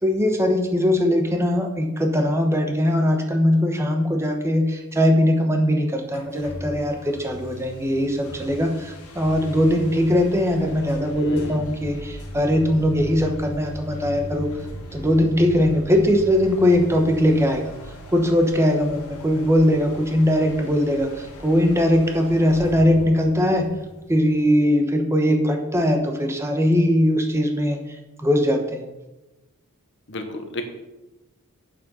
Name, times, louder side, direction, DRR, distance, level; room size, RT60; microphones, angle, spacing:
voice 1, 0.0-14.5 14.9-17.7 18.1-23.7 24.1-28.8, equal, 10° right, 3 dB, 1.1 m, -20 dB
sound 1, 6.1-24.6, equal, 85° left, 1.8 m, -38 dB
voice 2, 11.1-11.7 30.1-30.6, left 1 dB, 55° left, 6 dB, 1.3 m, -33 dB
8.3 x 7.2 x 5.5 m, 1.0 s
head